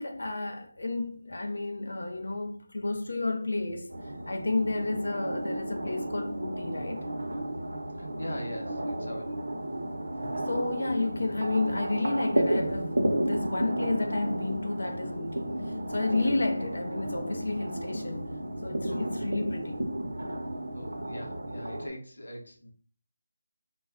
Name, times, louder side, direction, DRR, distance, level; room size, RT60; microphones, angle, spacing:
voice 1, 0.0-3.9 4.3-7.1 10.2-18.3 18.6-19.8, left 2 dB, 60° left, 0.4 m, -31 dB
sound 1, 3.9-21.9, right 1 dB, 70° right, 0.6 m, -33 dB
voice 2, 8.0-9.4 18.9-19.1 20.7-22.7, left 1 dB, 85° left, 0.8 m, -41 dB
2.2 x 2.1 x 3.5 m
figure-of-eight pair, 180°, 0 cm